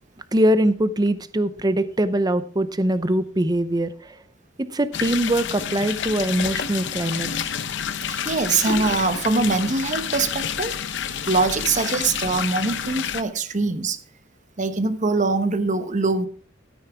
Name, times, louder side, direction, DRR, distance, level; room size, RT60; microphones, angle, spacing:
voice 1, 0.3-4.2 4.7-7.3, right 1 dB, 20° right, 13 dB, 0.6 m, -22 dB
sound 1, 4.9-13.2, left 8 dB, 65° left, 0.7 m, -29 dB
voice 2, 8.1-10.7 11.1-14.0 14.6-16.3, right 3 dB, 40° right, 10 dB, 1.0 m, -23 dB
13.0 x 9.6 x 3.5 m, 0.43 s
head